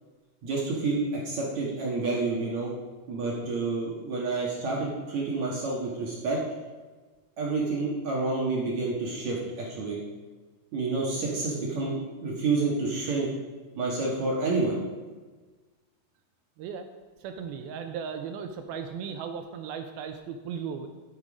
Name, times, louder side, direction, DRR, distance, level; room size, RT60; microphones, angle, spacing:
voice 1, 0.4-2.7 3.1-6.4 7.4-10.0 10.7-12.0 12.2-13.3 13.8-14.7, right 3 dB, 55° right, -3 dB, 2.2 m, -29 dB
voice 2, 17.2-20.9, right 7 dB, 80° right, 7 dB, 2.3 m, -36 dB
12.0 x 7.6 x 5.0 m, 1.3 s
omnidirectional pair, 4.8 m